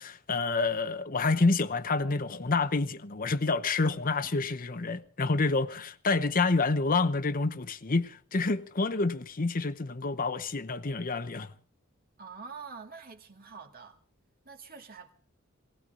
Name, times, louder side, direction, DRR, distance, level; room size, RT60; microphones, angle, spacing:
voice 1, 0.0-11.5, left 3 dB, 40° left, 0.8 m, -28 dB
voice 2, 12.2-14.0 14.4-15.1, right 5 dB, 45° right, 2.1 m, -46 dB
19.5 x 18.5 x 3.8 m
head